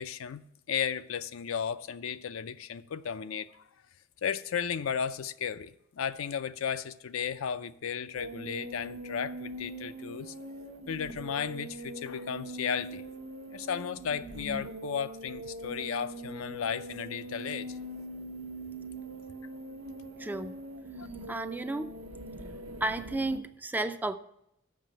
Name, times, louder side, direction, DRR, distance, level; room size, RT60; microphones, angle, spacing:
voice 1, 0.0-3.6 4.2-10.3 10.9-13.0 13.5-17.8 21.0-21.1, left 7 dB, 75° left, 0.4 m, -34 dB
sound 1, 8.1-23.4, right 1 dB, 70° right, 0.9 m, -42 dB
voice 2, 20.2-20.5 21.3-21.9 22.8-24.2, right 2 dB, 10° right, 0.4 m, -32 dB
7.4 x 6.0 x 7.5 m
head